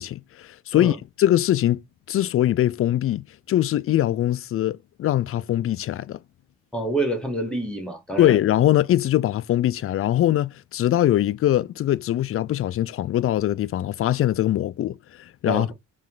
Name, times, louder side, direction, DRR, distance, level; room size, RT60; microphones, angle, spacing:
voice 1, 0.0-1.8 2.1-6.2 8.2-15.7, left 12 dB, 50° left, 0.4 m, -22 dB
voice 2, 6.7-8.4 15.4-15.7, right 2 dB, 5° left, 2.1 m, -27 dB
4.2 x 3.1 x 3.9 m
cardioid pair, 90°, 30 cm